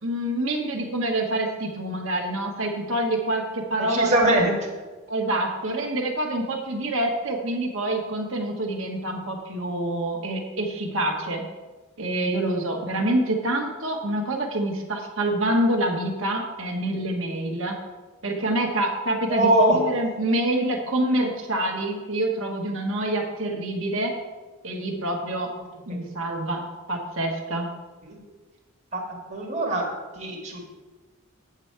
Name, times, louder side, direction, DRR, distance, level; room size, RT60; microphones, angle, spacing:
voice 1, 0.0-4.4 5.1-11.4 12.0-17.8 18.2-24.1 24.6-25.5 25.9-27.7, right 1 dB, 65° right, 1 dB, 1.4 m, -26 dB
voice 2, 3.8-4.5 19.3-19.8 25.9-26.0 28.0-28.2 28.9-29.0 29.3-29.8 30.1-30.6, right 1 dB, 35° right, -2 dB, 1.6 m, -22 dB
8.1 x 7.8 x 4.6 m, 1.3 s
head